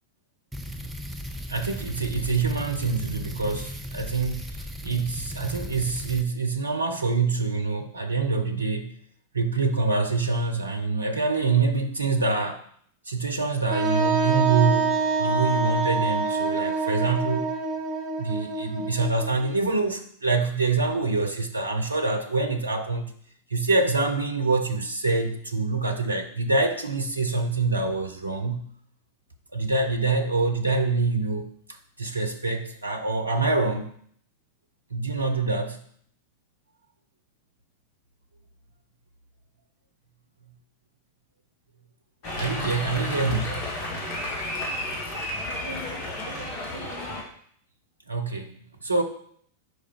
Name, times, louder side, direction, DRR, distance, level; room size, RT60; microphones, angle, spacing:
sound 1, 0.5-6.2, equal, 5° right, 0.6 m, -36 dB
voice 1, 1.5-8.9 9.3-12.6 13.1-17.5 18.2-23.0 23.5-28.6 29.5-33.9 34.9-35.8 42.4-43.7 48.1-49.0, right 3 dB, 80° right, 5 dB, 0.6 m, -25 dB
Wind instrument woodwind instrument, 13.7-19.5, right 4 dB, 35° right, 1.3 m, -26 dB
sound 2, 42.2-47.2, left 1 dB, 40° left, 1.7 m, -32 dB
5.0 x 4.8 x 4.7 m, 0.62 s
figure-of-eight pair, 90°, 0 cm